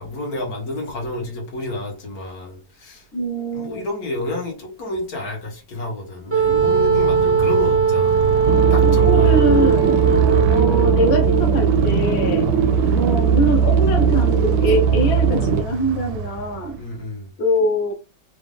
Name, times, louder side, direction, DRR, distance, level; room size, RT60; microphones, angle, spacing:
voice 1, 0.0-3.1 3.5-8.2 8.7-9.4 10.0-10.3 16.8-17.3, left 1 dB, 75° left, 1.8 m, -30 dB
voice 2, 3.1-3.8 8.8-10.0 10.5-12.5 12.9-16.8 17.4-17.9, right 1 dB, 50° left, 1.2 m, -23 dB
Wind instrument woodwind instrument, 6.3-11.4, right 6 dB, 20° right, 0.4 m, -19 dB
Motorcycle, 6.3-17.0, right 6 dB, 90° right, 1.1 m, -27 dB
sound 1, 8.5-15.6, right 6 dB, 65° right, 0.7 m, -18 dB
4.2 x 2.6 x 3.4 m
omnidirectional pair, 1.6 m